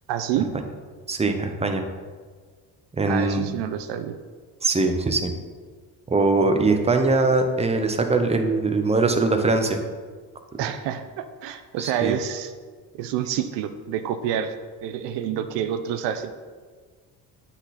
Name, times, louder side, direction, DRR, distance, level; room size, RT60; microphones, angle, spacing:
voice 1, 0.1-0.5 3.1-4.1 10.6-12.5 12.9-14.5 14.8-16.3, right 9 dB, 80° right, 9 dB, 0.7 m, -28 dB
voice 2, 1.1-1.9 3.0-3.6 4.6-5.3 6.1-9.8 10.6-10.7 11.8-12.1, right 3 dB, 15° right, 5 dB, 0.7 m, -22 dB
7.8 x 4.2 x 4.1 m, 1.5 s
cardioid pair, 95°, 42 cm